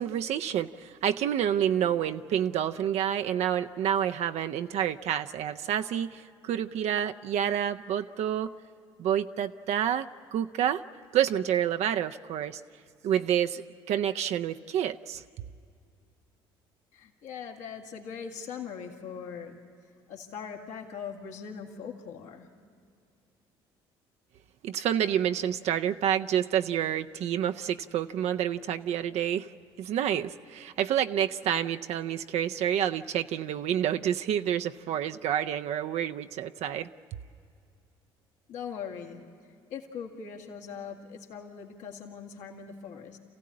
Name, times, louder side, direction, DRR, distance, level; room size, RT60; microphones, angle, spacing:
voice 1, 0.0-8.5 9.0-10.8 11.1-12.6 13.0-15.2 24.6-29.5 29.8-36.9, right 10 dB, 60° right, 8 dB, 0.5 m, -28 dB
voice 2, 16.9-19.6 20.1-22.5 38.5-39.2 39.7-43.2, left 7 dB, 70° left, 1 dB, 2.0 m, -41 dB
28.0 x 15.5 x 8.6 m, 2.4 s
hypercardioid pair, 60°, 13 cm